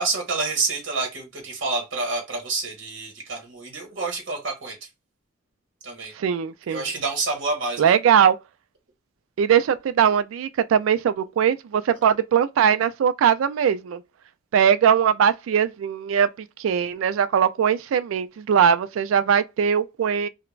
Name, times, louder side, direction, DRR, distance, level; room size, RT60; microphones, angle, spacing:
voice 1, 0.0-4.8 5.8-6.1 6.7-7.9, right 3 dB, 65° right, 1.0 m, -28 dB
voice 2, 6.2-6.9 7.8-8.4 9.4-14.0 14.5-16.3 16.6-20.3, right 8 dB, 85° right, 0.3 m, -20 dB
2.4 x 2.1 x 3.1 m
head